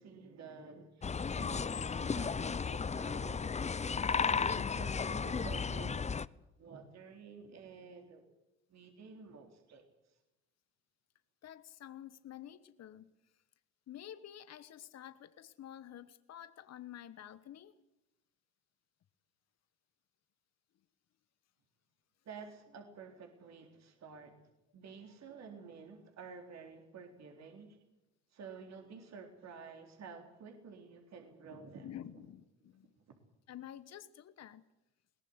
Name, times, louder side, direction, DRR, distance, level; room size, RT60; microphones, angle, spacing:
voice 1, 0.0-3.6 4.1-6.0 6.6-8.2 8.7-9.9 22.3-24.4 24.7-27.8 28.3-32.2 33.1-33.2, right 5 dB, 55° right, 4 dB, 3.9 m, -51 dB
sound 1, 1.0-6.3, left 5 dB, 20° left, 0.7 m, -34 dB
voice 2, 11.4-13.1 13.9-17.7 31.8-32.9 33.5-34.6, left 11 dB, 50° left, 13 dB, 1.3 m, -50 dB
21.5 x 18.5 x 8.1 m, 0.91 s
supercardioid pair, 65°, 33 cm